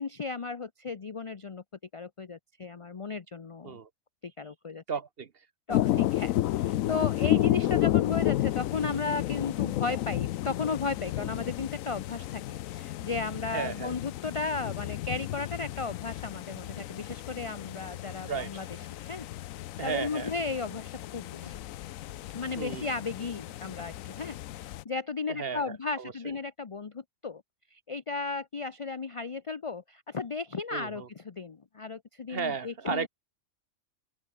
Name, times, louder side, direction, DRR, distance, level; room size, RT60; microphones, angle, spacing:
voice 1, 0.0-1.6 1.9-3.8 4.2-4.8 5.7-6.3 6.6-18.7 19.0-19.3 19.8-21.6 22.3-24.4 24.8-27.4 27.7-33.1, left 4 dB, 35° left, 0.6 m, -35 dB
voice 2, 4.9-5.5 7.4-7.6 13.5-13.9 18.3-18.7 19.8-20.3 22.6-22.9 25.3-26.1 30.7-31.1 32.3-33.1, right 6 dB, 50° right, 1.1 m, -35 dB
sound 1, 5.7-24.8, left 14 dB, 80° left, 1.0 m, -32 dB
open air
omnidirectional pair, 1.4 m